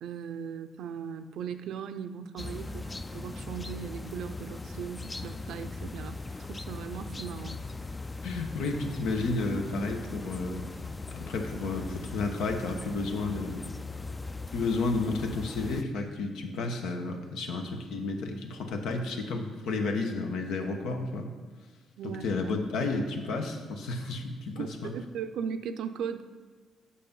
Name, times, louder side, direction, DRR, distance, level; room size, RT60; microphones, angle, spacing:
voice 1, 0.0-6.2 6.5-7.6 22.0-22.2 24.6-26.2, right 7 dB, 80° right, 10 dB, 0.5 m, -38 dB
sound 1, 2.4-15.8, left 3 dB, 20° left, 0.4 m, -39 dB
voice 2, 8.2-10.7 11.1-13.7 14.5-21.3 22.0-24.9, left 3 dB, 85° left, 4 dB, 1.0 m, -32 dB
8.5 x 5.7 x 5.4 m, 1.5 s
cardioid pair, 90°, 0 cm